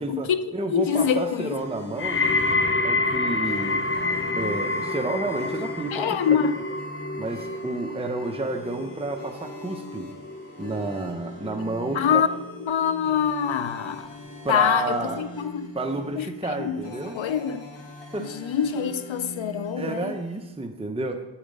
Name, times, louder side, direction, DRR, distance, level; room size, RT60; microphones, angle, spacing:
voice 1, 0.0-2.2 2.8-3.8 4.4-6.4 7.2-10.1 10.6-12.2 14.4-15.2 15.7-17.2 18.1-18.3 19.8-21.2, right 2 dB, 15° right, 0.8 m, -30 dB
voice 2, 0.7-1.6 5.9-6.6 11.9-12.3 12.7-14.1 14.5-15.7 16.2-16.3 16.6-16.8 17.1-17.7 18.4-20.1, left 8 dB, 85° left, 0.6 m, -24 dB
sound 1, 0.8-20.5, left 1 dB, 70° left, 1.6 m, -42 dB
sound 2, 2.0-13.1 13.4-13.9 14.7-14.8, left 2 dB, 30° left, 0.7 m, -29 dB
8.3 x 7.1 x 5.3 m
cardioid pair, 50°, 45 cm